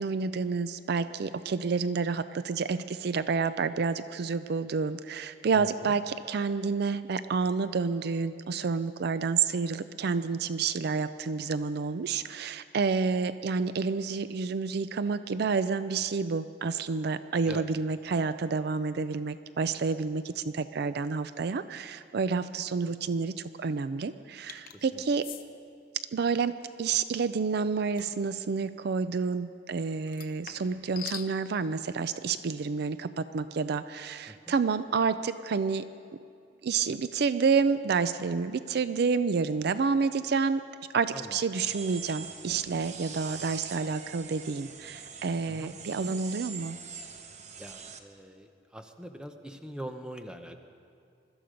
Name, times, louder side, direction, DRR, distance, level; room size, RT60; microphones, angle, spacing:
voice 1, 0.0-25.3 26.1-35.9 36.6-40.6 40.9-46.8, right 5 dB, 60° right, 13 dB, 0.4 m, -29 dB
voice 2, 5.5-5.9 17.4-17.7 24.7-25.0 34.3-34.4 41.1-41.4 45.5-45.7 47.6-50.7, equal, 5° right, 6 dB, 0.9 m, -43 dB
sound 1, 24.5-24.8 25.2-25.4 28.0-28.2 30.1-31.3, left 10 dB, 50° left, 0.8 m, -42 dB
sound 2, 41.5-48.0, right 6 dB, 40° right, 1.0 m, -43 dB
21.5 x 13.0 x 5.2 m, 2.4 s
head